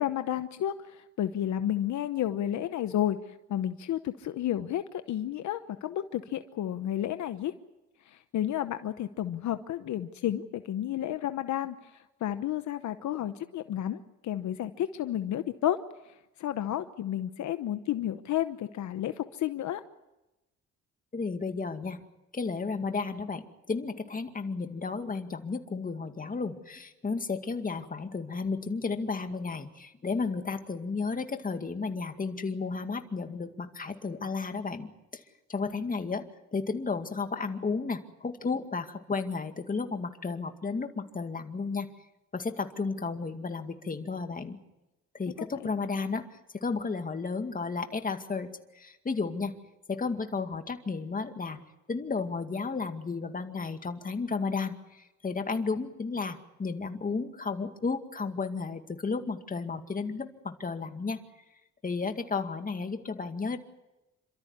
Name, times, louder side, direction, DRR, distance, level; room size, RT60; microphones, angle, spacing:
voice 1, 0.0-7.5 8.1-11.8 12.2-15.8 16.4-19.8 45.4-45.5, left 11 dB, 70° left, 10 dB, 1.0 m, -31 dB
voice 2, 21.1-22.0 22.3-35.2 35.5-36.3 36.5-41.9 42.3-44.6 45.1-49.5 49.9-51.6 51.9-61.2 61.8-63.6, left 4 dB, 30° left, 6 dB, 2.2 m, -33 dB
28.0 x 13.5 x 9.8 m, 0.99 s
cardioid pair, 90°, 30 cm